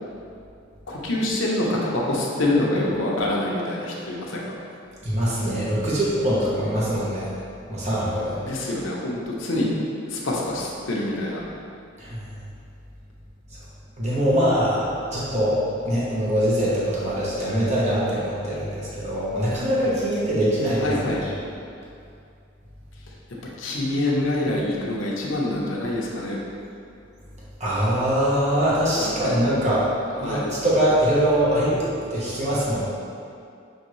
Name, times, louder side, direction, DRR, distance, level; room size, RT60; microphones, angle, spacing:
voice 1, 0.9-4.6 8.4-9.7 10.1-11.4 20.8-21.2 23.6-26.4 29.0-29.4 30.2-30.5, left 1 dB, 75° left, -3 dB, 0.8 m, -25 dB
voice 2, 5.0-7.3 7.7-8.4 12.0-12.3 14.0-14.9 15.1-20.9 21.2-21.3 27.6-29.9 30.2-31.8 32.1-32.8, equal, 35° right, -8 dB, 1.0 m, -23 dB
6.4 x 2.7 x 3.1 m, 2.5 s
head